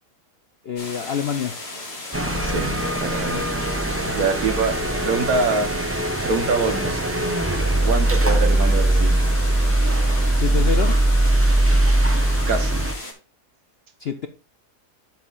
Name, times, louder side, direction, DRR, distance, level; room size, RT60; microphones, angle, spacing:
voice 1, 0.6-1.6 4.1-4.2 8.3-8.4 10.3-11.0 14.0-14.3, left 7 dB, 60° left, 0.6 m, -27 dB
sound 1, 0.8-13.1, left 2 dB, 40° left, 2.3 m, -35 dB
sound 2, 2.1-12.9, right 1 dB, 15° right, 0.5 m, -21 dB
voice 2, 2.4-2.7 3.0-3.4 4.2-4.8 5.0-5.7 6.2-7.0 7.8-9.2 12.5-12.8, right 4 dB, 65° right, 1.5 m, -24 dB
11.5 x 6.0 x 2.5 m
omnidirectional pair, 1.7 m